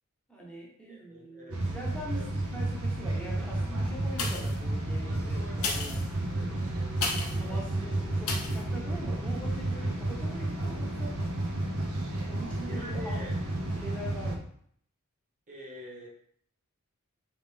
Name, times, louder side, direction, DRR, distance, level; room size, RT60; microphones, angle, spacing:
voice 1, 0.3-2.2 2.5-6.5 7.4-11.2 12.3-13.2 13.5-14.5, right 1 dB, 5° left, -4 dB, 0.8 m, -43 dB
voice 2, 0.8-1.7 2.1-2.3 6.3-6.7 12.6-13.3 15.5-16.1, left 1 dB, 35° right, -3 dB, 1.2 m, -45 dB
sound 1, 1.5-14.4, right 1 dB, 80° right, 0.7 m, -32 dB
sound 2, 4.1-4.7 5.5-7.5 8.2-8.6 9.2-9.3, left 4 dB, 70° left, 0.9 m, -34 dB
3.7 x 3.4 x 3.4 m, 0.63 s
head